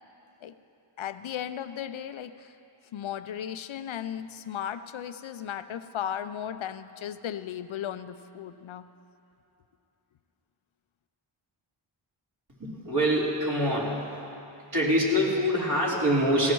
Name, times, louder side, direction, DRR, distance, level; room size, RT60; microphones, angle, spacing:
voice 1, 1.0-2.5 2.9-8.9, left 9 dB, 70° left, 11 dB, 0.7 m, -36 dB
voice 2, 12.6-14.1 14.7-16.5, equal, 50° right, -7 dB, 4.1 m, -25 dB
18.0 x 17.5 x 3.1 m, 2.7 s
cardioid pair, 65°, 50 cm